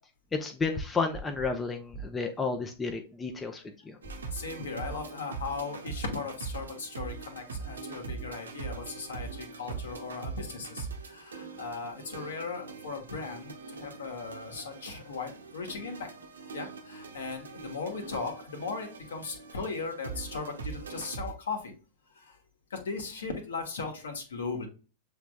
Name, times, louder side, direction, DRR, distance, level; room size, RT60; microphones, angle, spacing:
voice 1, 0.3-4.0, left 4 dB, 15° left, 5 dB, 0.7 m, -32 dB
sound 1, 4.0-21.3, right 5 dB, 75° right, 0.8 m, -42 dB
voice 2, 4.3-16.1 16.5-21.7 22.1-22.4 22.7-24.7, left 4 dB, 70° left, 3 dB, 1.3 m, -37 dB
7.1 x 3.4 x 2.2 m, 0.33 s
figure-of-eight pair, 95°, 0 cm